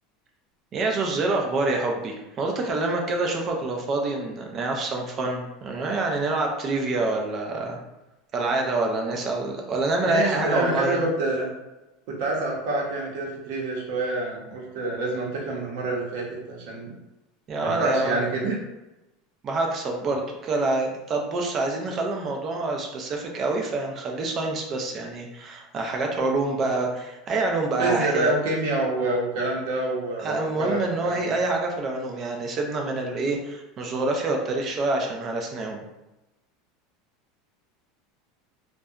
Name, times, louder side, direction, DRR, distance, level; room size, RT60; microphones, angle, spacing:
voice 1, 0.7-7.8 8.3-11.0 17.5-18.3 19.4-28.3 30.2-35.8, right 2 dB, 30° right, 1 dB, 0.4 m, -26 dB
voice 2, 10.0-11.5 12.1-16.9 17.6-18.6 27.8-31.2, right 2 dB, 65° right, -2 dB, 0.8 m, -27 dB
2.7 x 2.2 x 2.3 m, 0.98 s
supercardioid pair, 145°, 0 cm